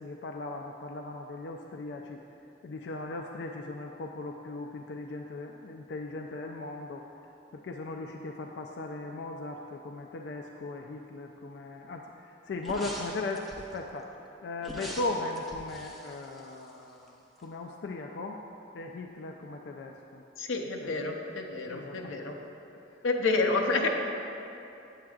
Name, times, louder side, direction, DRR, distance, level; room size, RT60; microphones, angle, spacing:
voice 1, 0.0-2.2 2.6-7.0 7.5-18.4 18.7-20.2 20.8-21.0 21.7-22.1 22.7-22.9, left 2 dB, 60° left, 2 dB, 0.3 m, -38 dB
sound 1, 12.6-13.8 14.6-17.1 17.4-17.5, equal, ahead, 0.5 m, -43 dB
voice 2, 20.4-22.3 23.0-23.9, left 3 dB, 90° left, 3 dB, 0.6 m, -29 dB
8.6 x 7.5 x 2.3 m, 2.8 s
head